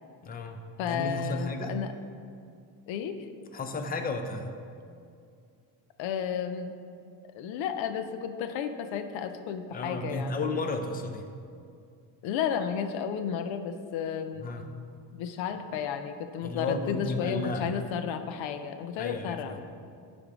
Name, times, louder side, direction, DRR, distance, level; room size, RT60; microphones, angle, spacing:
voice 1, 0.2-0.6 0.8-1.7 3.5-4.5 9.7-11.2 14.4-14.6 16.4-17.7 19.0-19.6, left 2 dB, 20° left, 6 dB, 0.6 m, -33 dB
voice 2, 0.8-1.9 2.9-3.3 6.0-6.7 7.3-10.5 12.2-14.5 15.1-19.6, left 7 dB, 75° left, 9 dB, 0.7 m, -32 dB
10.5 x 3.6 x 4.9 m, 2.4 s
cardioid pair, 90°, 47 cm